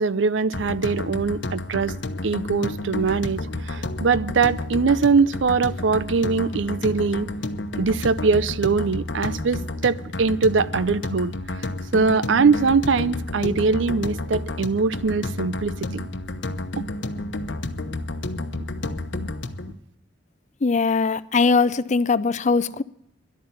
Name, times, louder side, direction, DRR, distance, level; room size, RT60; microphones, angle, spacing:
voice 1, 0.0-2.0 2.2-7.3 7.8-11.3 11.9-16.1, right 4 dB, 90° right, 0.6 m, -22 dB
sound 1, 0.5-19.7, left 2 dB, 70° left, 1.0 m, -31 dB
voice 2, 20.6-22.8, left 4 dB, 40° left, 0.5 m, -20 dB
11.5 x 8.6 x 9.6 m
head